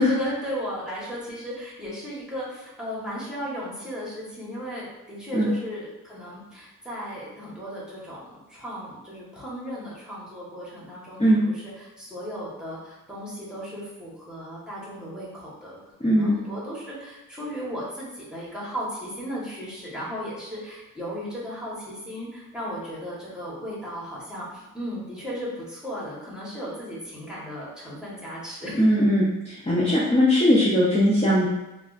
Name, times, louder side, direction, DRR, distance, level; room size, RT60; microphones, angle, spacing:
voice 1, 0.0-29.0, equal, ahead, -7 dB, 1.3 m, -35 dB
voice 2, 16.0-16.4 28.8-29.2 29.6-31.5, equal, 20° left, -9 dB, 0.8 m, -19 dB
3.4 x 2.5 x 2.5 m, 0.96 s
cardioid pair, 90°, 33 cm